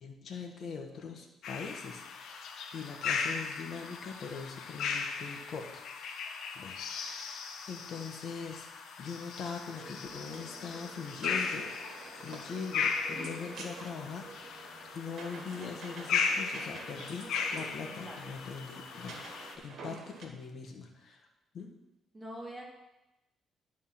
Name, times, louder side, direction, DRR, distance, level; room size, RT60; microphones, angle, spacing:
voice 1, 0.0-2.4 2.7-5.8 6.5-8.7 9.0-11.7 12.1-19.3 19.6-21.3 21.5-21.7, left 5 dB, 55° left, 3 dB, 1.3 m, -42 dB
sound 1, 1.4-19.5, left 5 dB, 75° left, 0.9 m, -37 dB
sound 2, 9.8-20.3, right 4 dB, 65° right, 1.5 m, -48 dB
voice 2, 17.8-18.2 19.9-20.0 22.1-22.6, equal, 5° right, -3 dB, 2.5 m, -44 dB
11.0 x 3.8 x 5.9 m, 0.96 s
cardioid pair, 90°, 0 cm